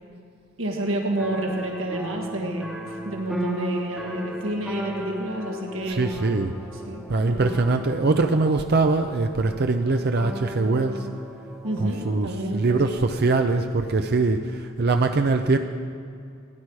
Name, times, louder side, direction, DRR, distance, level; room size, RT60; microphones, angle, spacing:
voice 1, 0.6-6.1 6.8-7.5 11.6-12.8, right 1 dB, 75° right, 1 dB, 1.7 m, -29 dB
sound 1, 1.2-12.4, right 1 dB, 5° right, 1.2 m, -36 dB
voice 2, 5.9-6.5 7.1-11.1 11.8-15.6, right 3 dB, 55° right, 6 dB, 0.6 m, -22 dB
16.0 x 10.5 x 4.8 m, 2.4 s
head